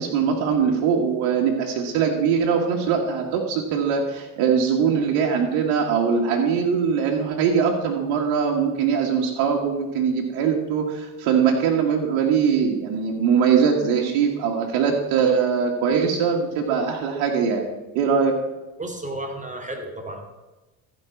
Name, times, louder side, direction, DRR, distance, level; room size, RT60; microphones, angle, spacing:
voice 1, 0.0-17.6 17.9-18.3, right 6 dB, 75° right, 0 dB, 1.7 m, -21 dB
voice 2, 18.8-20.2, right 1 dB, 20° right, 3 dB, 2.8 m, -32 dB
14.5 x 5.4 x 7.1 m, 1.1 s
supercardioid pair, 75°, 41 cm